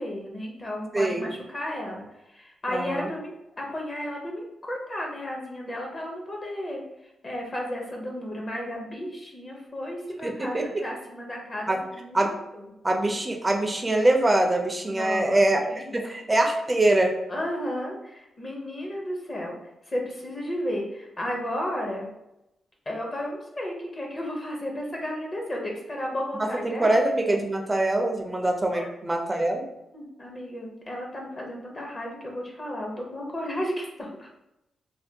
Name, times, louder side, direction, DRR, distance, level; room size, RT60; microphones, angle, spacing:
voice 1, 0.0-2.0 2.3-3.3 3.6-6.8 7.2-12.7 14.9-15.4 15.7-16.0 17.3-19.6 19.9-22.1 22.9-27.0 28.7-28.9 29.3-29.4 29.9-34.3, left 1 dB, 30° left, -1 dB, 0.6 m, -33 dB
voice 2, 0.9-1.3 2.7-3.1 10.2-10.8 11.7-11.8 12.1-12.4 12.8-17.1 26.4-29.6, right 1 dB, 15° right, 2 dB, 0.4 m, -24 dB
3.3 x 2.2 x 2.7 m, 0.87 s
wide cardioid pair, 125°, 0 cm